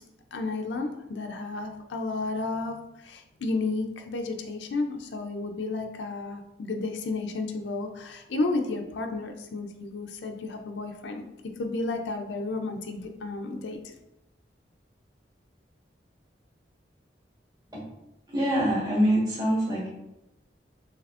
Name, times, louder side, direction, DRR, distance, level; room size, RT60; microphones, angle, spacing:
voice 1, 0.3-11.2 11.6-13.9, left 3 dB, 90° left, 4 dB, 0.4 m, -32 dB
voice 2, 18.3-19.9, equal, 25° right, -5 dB, 1.3 m, -24 dB
6.7 x 2.8 x 2.4 m, 0.94 s
head